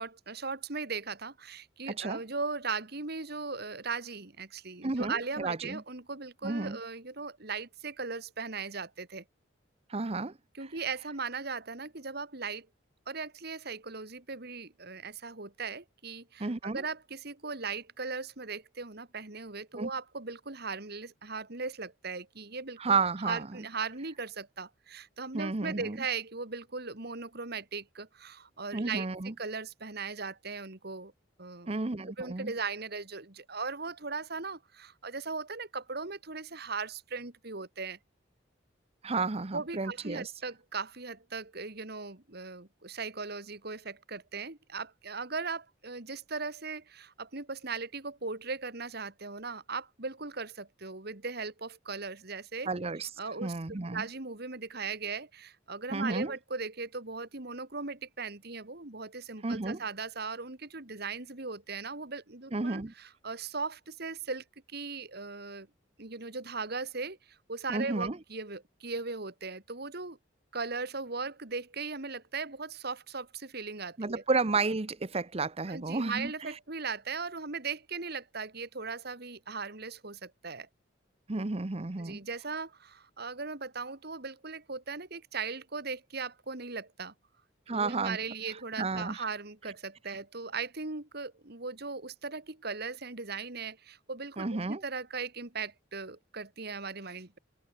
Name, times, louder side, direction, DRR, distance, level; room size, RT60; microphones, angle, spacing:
voice 1, 0.0-9.2 10.5-12.7 13.1-31.1 31.4-31.7 32.2-38.0 39.1-39.2 39.5-52.7 53.2-53.5 53.9-65.7 66.0-67.2 67.5-70.2 70.5-74.2 75.7-80.7 82.0-87.1 87.7-97.4, right 4 dB, 55° right, 2.5 m, -38 dB
voice 2, 1.9-2.2 4.8-5.8 6.4-6.8 9.9-10.3 16.4-16.8 19.7-19.9 22.8-23.5 25.3-26.0 28.7-29.3 31.7-32.5 39.0-40.3 52.7-53.1 53.4-54.0 55.9-56.3 59.4-59.8 62.5-62.9 67.7-68.2 74.0-76.5 81.3-82.2 87.7-88.2 88.8-89.2 94.4-94.8, right 3 dB, 30° right, 0.8 m, -32 dB
head